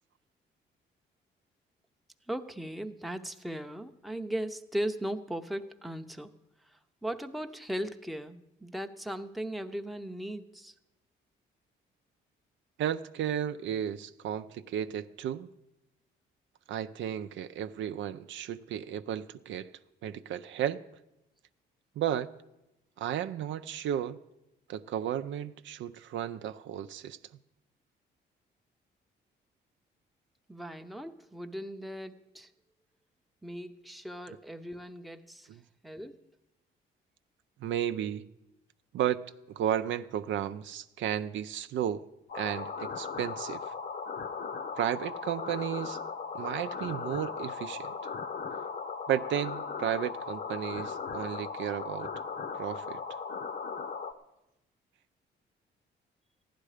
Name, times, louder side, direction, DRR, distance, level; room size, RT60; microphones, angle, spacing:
voice 1, 2.3-6.4 7.0-10.7 30.5-32.5 33.4-35.5 35.8-36.2, right 1 dB, ahead, 0.7 m, -38 dB
voice 2, 12.8-15.5 16.7-19.7 20.0-20.8 22.0-22.3 23.0-24.2 24.7-27.2 35.5-35.6 37.6-38.3 38.9-39.2 39.5-42.1 42.3-43.7 44.8-46.0 46.3-47.9 49.1-52.1 52.6-53.0, right 10 dB, 70° right, 0.5 m, -33 dB
sound 1, 42.3-54.1, left 5 dB, 50° left, 0.9 m, -37 dB
15.0 x 11.0 x 4.9 m
cardioid pair, 90°, 20 cm